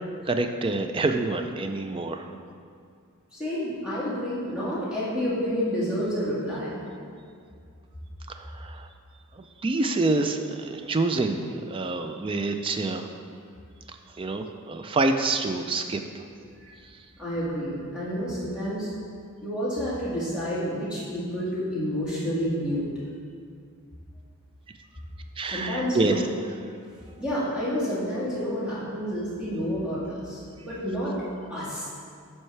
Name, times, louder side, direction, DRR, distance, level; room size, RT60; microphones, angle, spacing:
voice 1, 0.3-2.3 8.3-8.9 9.4-13.1 13.9-16.0 25.4-26.2, right 3 dB, 25° right, 7 dB, 0.3 m, -27 dB
voice 2, 3.3-6.8 16.6-16.7 17.2-18.9 19.4-22.8 25.5-26.2 27.2-31.2 31.5-31.9, equal, 5° right, -10 dB, 1.8 m, -29 dB
8.9 x 5.5 x 3.3 m, 2.2 s
head